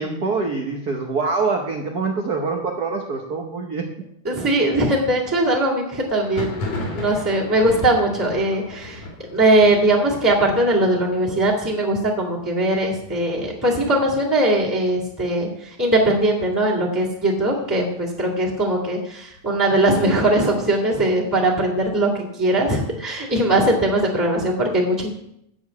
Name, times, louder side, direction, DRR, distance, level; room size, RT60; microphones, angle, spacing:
voice 1, 0.0-3.9, right 4 dB, 70° right, 2 dB, 0.9 m, -25 dB
voice 2, 4.2-6.6 6.9-9.0 9.3-25.1, right 1 dB, 10° right, -3 dB, 1.6 m, -20 dB
Thunder, 6.2-15.7 16.0-16.6 16.9-17.9 18.3-20.0, left 2 dB, 75° left, 3.5 m, -36 dB
8.6 x 6.6 x 8.3 m, 0.77 s
omnidirectional pair, 3.3 m